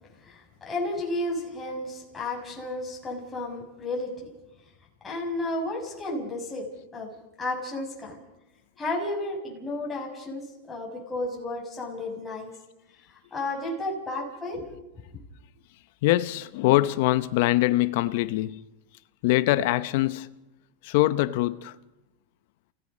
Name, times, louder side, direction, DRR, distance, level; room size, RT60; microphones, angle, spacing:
voice 1, 0.2-4.3 5.0-7.1 7.4-8.2 8.8-12.5 13.1-14.8, left 2 dB, 15° left, 7.0 m, -33 dB
voice 2, 16.0-18.6 19.2-20.3 20.8-21.7, left 17 dB, 65° left, 0.8 m, -23 dB
29.5 x 16.5 x 5.5 m
supercardioid pair, 125°, 0 cm